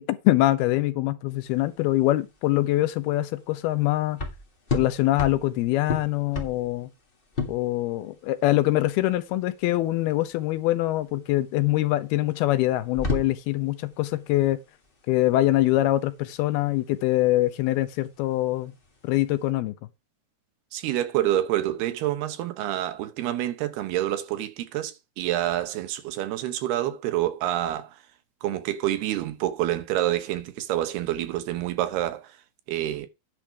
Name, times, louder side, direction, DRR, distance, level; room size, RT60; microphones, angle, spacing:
voice 1, 0.0-4.2 4.7-6.9 7.5-14.6 15.1-18.7 19.0-19.8, left 16 dB, 80° left, 2.8 m, -24 dB
sound 1, 1.3-19.5, left 4 dB, 40° left, 0.7 m, -35 dB
voice 2, 20.7-28.0 28.4-32.3 32.7-33.1, right 13 dB, 90° right, 3.2 m, -27 dB
10.5 x 5.0 x 5.9 m
omnidirectional pair, 4.4 m